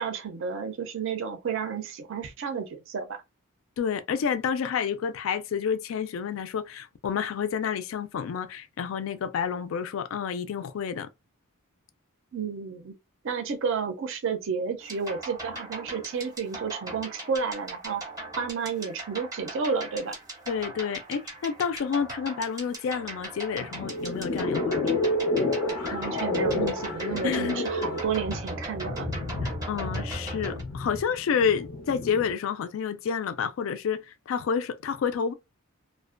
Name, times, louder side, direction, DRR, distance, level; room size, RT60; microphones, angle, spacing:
voice 1, 0.0-3.2 12.3-12.9 13.2-18.0 18.4-20.2 25.9-29.1, right 5 dB, 60° right, 0.4 m, -31 dB
voice 2, 3.8-11.1 20.5-25.0 27.2-27.7 29.4-35.3, left 7 dB, 60° left, 0.3 m, -29 dB
sound 1, 14.8-30.6, right 1 dB, 15° right, 0.6 m, -39 dB
sound 2, 23.6-32.3, left 2 dB, 90° left, 0.7 m, -30 dB
2.4 x 2.1 x 2.4 m
head